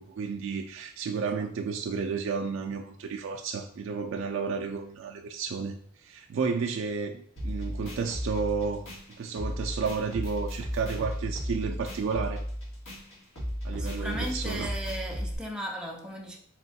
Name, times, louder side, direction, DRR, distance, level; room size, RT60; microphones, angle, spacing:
voice 1, 0.0-5.7 6.0-8.9 9.2-12.4 13.6-14.7, right 5 dB, 70° right, 0.3 m, -32 dB
sound 1, 7.4-15.3, equal, 85° left, 1.7 m, -35 dB
voice 2, 13.7-16.4, equal, 5° right, 0.5 m, -37 dB
4.2 x 2.3 x 4.0 m
head